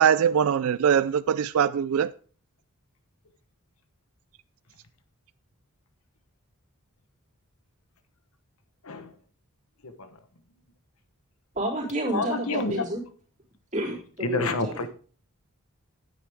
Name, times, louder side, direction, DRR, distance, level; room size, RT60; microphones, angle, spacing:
voice 1, 0.0-2.1, right 8 dB, 70° right, 0.3 m, -22 dB
voice 2, 11.6-13.0 13.7-14.8, right 1 dB, 35° right, 3.5 m, -30 dB
voice 3, 12.1-12.8 14.2-14.9, left 3 dB, 70° left, 1.1 m, -28 dB
10.0 x 9.0 x 3.5 m
head